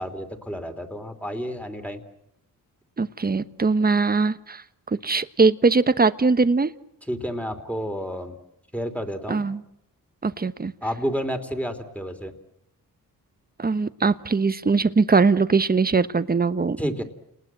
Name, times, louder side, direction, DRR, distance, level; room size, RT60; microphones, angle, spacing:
voice 1, 0.0-2.0 7.1-8.3 8.7-9.4 10.8-12.3 16.8-17.0, equal, 5° left, 6 dB, 3.2 m, -30 dB
voice 2, 3.0-6.7 9.3-9.6 10.2-10.7 13.6-16.8, right 4 dB, 25° right, 12 dB, 1.2 m, -21 dB
29.5 x 20.0 x 7.6 m, 0.80 s
cardioid pair, 80°, 36 cm